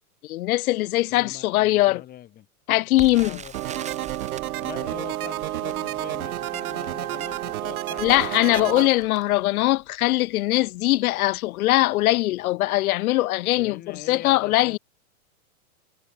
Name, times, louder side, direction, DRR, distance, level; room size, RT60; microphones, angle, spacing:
voice 1, 0.2-2.0 2.7-3.4 8.0-14.8, left 17 dB, 70° left, 0.5 m, -21 dB
voice 2, 1.1-2.5 3.0-3.8 4.6-8.8 13.5-14.8, left 12 dB, 20° left, 1.7 m, -42 dB
Crackle, 2.9-9.9 10.5-10.6 10.9-11.1 11.7-12.0 12.2-12.3, right 8 dB, 15° right, 3.4 m, -44 dB
sound 1, 3.5-8.9, right 14 dB, 75° right, 1.1 m, -30 dB
hypercardioid pair, 150°, 44 cm